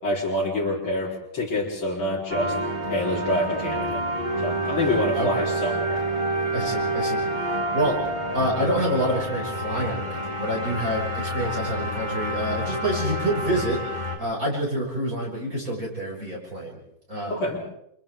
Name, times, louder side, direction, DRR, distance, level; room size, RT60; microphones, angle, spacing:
voice 1, 0.0-2.6 2.9-4.0 4.4-6.0 17.3-17.6, left 1 dB, 80° left, -5 dB, 4.8 m, -26 dB
sound 1, 2.3-14.2, right 1 dB, 20° right, 3.3 m, -28 dB
voice 2, 6.5-8.0 8.3-16.8 17.1-17.4, right 1 dB, 40° right, -4 dB, 6.8 m, -27 dB
29.5 x 26.5 x 3.7 m, 0.77 s
omnidirectional pair, 2.2 m